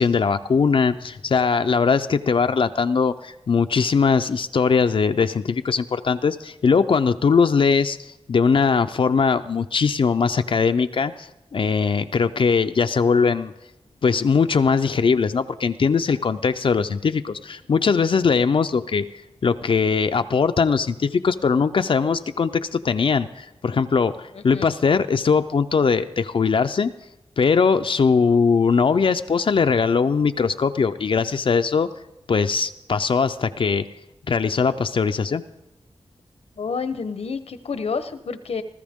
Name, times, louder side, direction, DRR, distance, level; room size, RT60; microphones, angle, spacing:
voice 1, 0.0-13.5 14.0-19.0 19.4-26.9 27.4-31.9 32.3-33.8 34.3-35.4, left 5 dB, 60° left, 8 dB, 0.5 m, -20 dB
voice 2, 36.6-38.6, left 5 dB, 80° left, 11 dB, 0.9 m, -29 dB
20.0 x 13.5 x 3.6 m, 0.93 s
wide cardioid pair, 120°, 10 cm